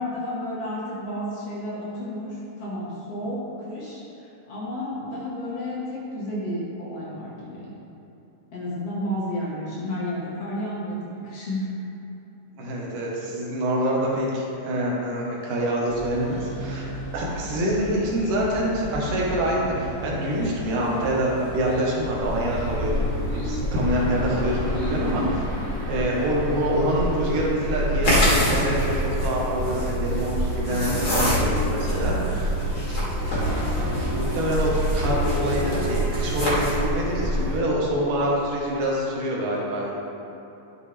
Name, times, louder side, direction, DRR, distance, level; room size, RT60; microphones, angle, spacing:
voice 1, 0.0-7.7 8.5-11.7 30.6-30.9 31.9-32.2, left 1 dB, 55° left, -6 dB, 2.2 m, -32 dB
voice 2, 12.6-16.9 17.1-25.4 25.9-32.5 33.7-40.0, right 1 dB, 75° right, -4 dB, 2.9 m, -26 dB
sound 1, 15.9-25.3, left 1 dB, 90° left, 3.0 m, -35 dB
sound 2, 22.2-37.6, equal, 30° right, 2.1 m, -28 dB
sound 3, 28.0-36.9, left 1 dB, 40° left, 2.7 m, -26 dB
11.5 x 6.9 x 3.4 m, 2.9 s
omnidirectional pair, 3.8 m